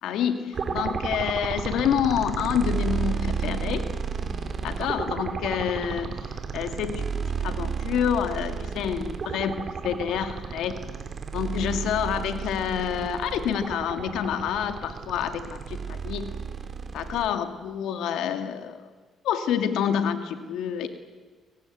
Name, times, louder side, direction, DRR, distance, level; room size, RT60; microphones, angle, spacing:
voice 1, 0.0-3.8 4.6-6.2 6.5-7.0 7.4-10.8 11.3-16.3 16.9-18.8 19.2-20.9, left 8 dB, 85° left, 8 dB, 2.3 m, -28 dB
sound 1, 0.5-17.3, right 6 dB, 45° right, 2.9 m, -32 dB
24.0 x 19.0 x 9.4 m, 1.4 s
cardioid pair, 90°, 0 cm